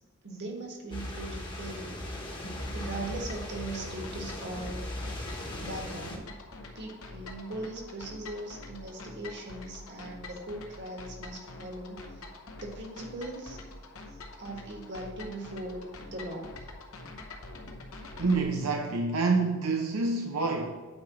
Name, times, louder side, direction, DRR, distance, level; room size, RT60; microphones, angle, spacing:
voice 1, 0.2-2.0 2.7-4.8 5.6-6.3 6.7-12.2 12.6-13.6 14.4-16.5, right 2 dB, 55° right, 0 dB, 1.5 m, -39 dB
sound 1, 0.9-6.2, left 1 dB, 25° left, 1.1 m, -38 dB
sound 2, 2.6-18.4, left 2 dB, 70° left, 0.9 m, -46 dB
voice 2, 18.2-20.8, right 3 dB, 85° right, 2 dB, 0.7 m, -27 dB
8.8 x 3.3 x 6.0 m, 1.4 s
head